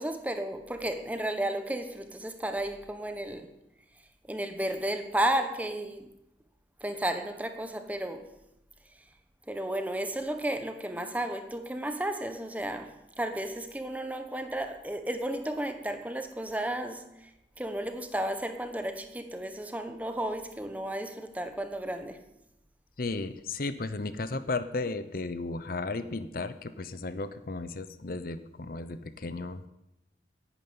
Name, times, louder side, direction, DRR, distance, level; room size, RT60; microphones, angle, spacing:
voice 1, 0.0-3.5 4.3-6.1 6.8-8.3 9.5-17.3 17.6-22.2, right 1 dB, 10° right, 1.0 m, -33 dB
voice 2, 23.0-29.7, left 3 dB, 50° left, 0.7 m, -34 dB
11.0 x 9.4 x 8.7 m
head